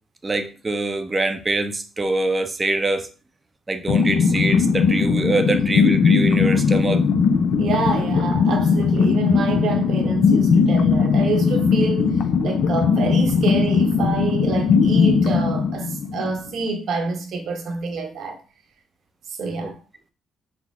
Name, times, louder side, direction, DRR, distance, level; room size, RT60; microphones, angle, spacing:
voice 1, 0.2-3.1 3.7-7.0 19.6-19.7, right 2 dB, 25° right, 0.6 m, -24 dB
sound 1, 3.9-16.5, left 5 dB, 75° left, 0.5 m, -19 dB
voice 2, 7.6-12.1 12.4-18.4 19.4-19.8, right 4 dB, 70° right, 0.9 m, -27 dB
5.8 x 2.0 x 3.5 m
cardioid pair, 90°, 0 cm